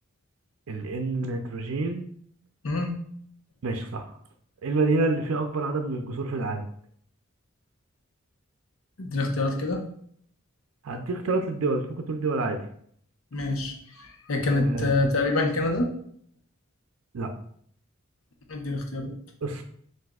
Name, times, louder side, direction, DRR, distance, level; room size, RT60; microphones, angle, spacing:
voice 1, 0.7-2.1 3.6-4.1 4.6-6.7 10.8-12.6 14.5-14.9 17.1-17.3 19.4-19.6, right 3 dB, 80° right, 5 dB, 0.5 m, -28 dB
voice 2, 2.6-2.9 9.0-9.8 13.3-15.9 18.5-19.1, left 2 dB, 80° left, 3 dB, 0.9 m, -26 dB
7.5 x 2.6 x 2.3 m, 0.64 s
head